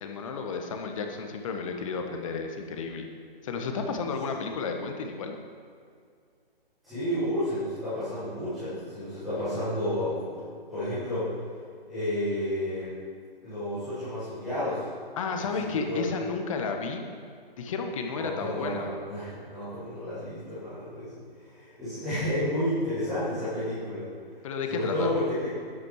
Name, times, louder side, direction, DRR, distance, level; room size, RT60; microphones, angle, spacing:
voice 1, 0.0-3.1 3.4-5.3 15.2-17.0 17.6-18.9 24.4-25.1, left 5 dB, 35° left, 4 dB, 1.4 m, -32 dB
voice 2, 6.8-11.3 11.9-12.9 13.4-14.8 15.4-16.0 18.1-24.1 24.7-25.5, left 1 dB, ahead, -20 dB, 0.3 m, -31 dB
11.5 x 10.5 x 4.9 m, 2.2 s
figure-of-eight pair, 140°, 30 cm